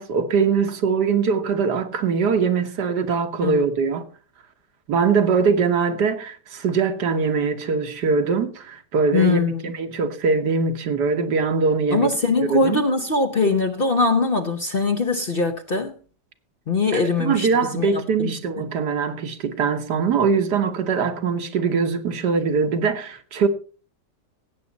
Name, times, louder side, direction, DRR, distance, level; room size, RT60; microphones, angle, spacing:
voice 1, 0.0-4.0 4.9-12.1 12.5-12.8 16.9-23.5, right 5 dB, 75° right, 1.7 m, -22 dB
voice 2, 9.1-9.6 11.9-16.0 16.7-18.4, left 3 dB, 40° left, 0.9 m, -22 dB
17.0 x 8.4 x 4.0 m
omnidirectional pair, 1.8 m